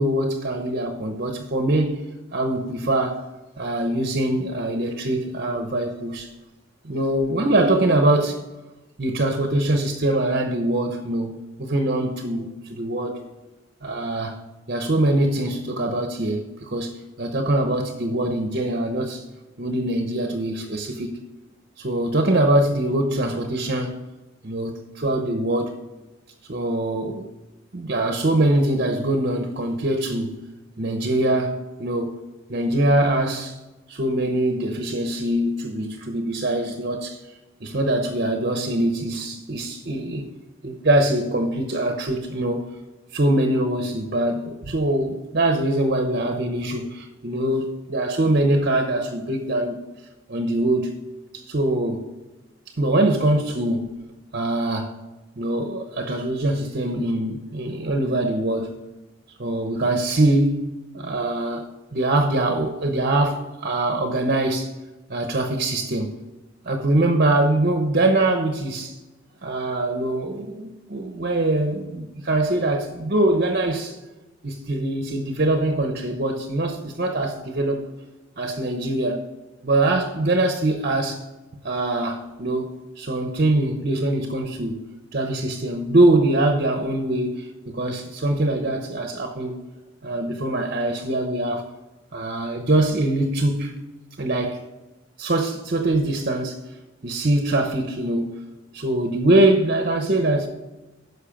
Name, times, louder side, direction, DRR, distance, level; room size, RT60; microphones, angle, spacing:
voice 1, 0.0-2.0 2.3-3.2 3.6-6.3 6.8-8.4 9.0-13.2 13.8-14.3 14.7-19.2 19.6-21.2 21.8-23.9 24.4-25.7 26.5-27.3 27.7-30.4 30.8-32.2 32.5-33.6 33.9-37.2 37.6-40.3 40.6-42.7 43.1-49.8 50.3-50.9 51.3-52.1 52.8-53.9 54.3-54.9 55.4-58.8 59.4-60.7 60.9-61.7 61.9-64.7 65.1-66.1 66.6-68.9 69.4-74.0 74.4-77.9 78.4-79.3 79.6-81.2 81.6-84.8 85.1-87.5 87.7-89.6 90.0-91.6 92.1-93.7 94.2-94.6 95.2-96.6 97.0-98.4 98.7-100.5, right 1 dB, 50° right, 0.9 m, -23 dB
10.0 x 6.5 x 5.2 m
head